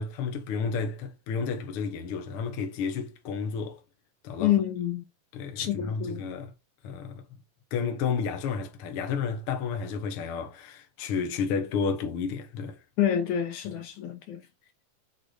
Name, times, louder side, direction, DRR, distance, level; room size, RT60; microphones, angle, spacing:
voice 1, 0.0-3.8 4.2-4.5 5.3-6.5 6.8-7.2 7.7-12.8, left 5 dB, 55° left, 1.9 m, -31 dB
voice 2, 4.4-5.0 5.6-6.2 13.0-14.4, left 10 dB, 75° left, 2.4 m, -27 dB
6.8 x 4.8 x 3.9 m
omnidirectional pair, 3.6 m